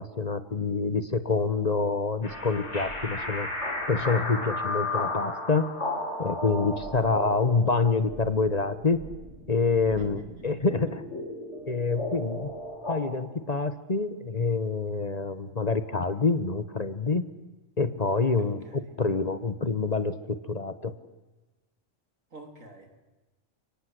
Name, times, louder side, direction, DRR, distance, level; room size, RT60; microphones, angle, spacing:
voice 1, 0.0-3.5 3.9-5.7 6.2-9.0 9.5-11.0 11.7-12.5 12.9-17.3 17.8-20.9, left 4 dB, 35° left, 12 dB, 1.1 m, -27 dB
sound 1, 2.2-13.0, left 2 dB, 60° left, 6.2 m, -34 dB
voice 2, 10.0-10.7 18.4-19.0 22.3-23.0, right 2 dB, 90° right, 5 dB, 3.6 m, -48 dB
30.0 x 18.5 x 8.0 m, 1.1 s
omnidirectional pair, 1.3 m